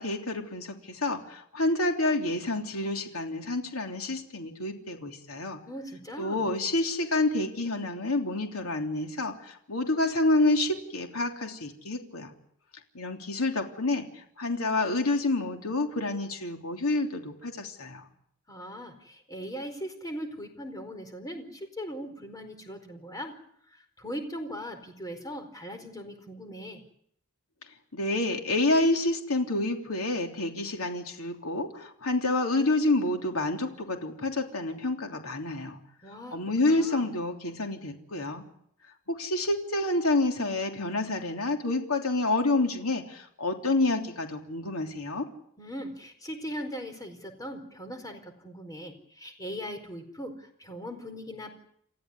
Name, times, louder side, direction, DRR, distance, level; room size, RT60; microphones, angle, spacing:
voice 1, 0.0-5.6 6.2-12.3 12.9-18.1 27.9-35.8 36.3-38.4 39.1-45.3, left 2 dB, 85° left, 3 dB, 3.2 m, -28 dB
voice 2, 5.6-6.4 18.5-23.4 24.0-26.8 36.0-36.4 36.7-37.1 45.6-51.5, equal, 15° left, 6 dB, 4.6 m, -39 dB
29.5 x 14.5 x 9.8 m, 0.70 s
head